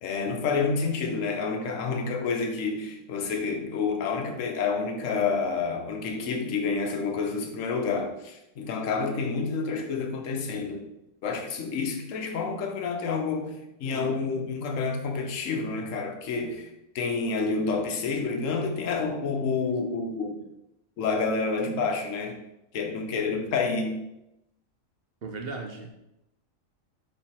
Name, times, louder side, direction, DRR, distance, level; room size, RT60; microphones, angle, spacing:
voice 1, 0.0-10.9 11.2-20.4 21.0-22.4 22.7-24.0, left 4 dB, 70° left, 3 dB, 1.2 m, -29 dB
voice 2, 25.2-25.9, right 3 dB, 55° right, 3 dB, 0.7 m, -36 dB
5.6 x 4.0 x 4.2 m, 0.89 s
omnidirectional pair, 1.4 m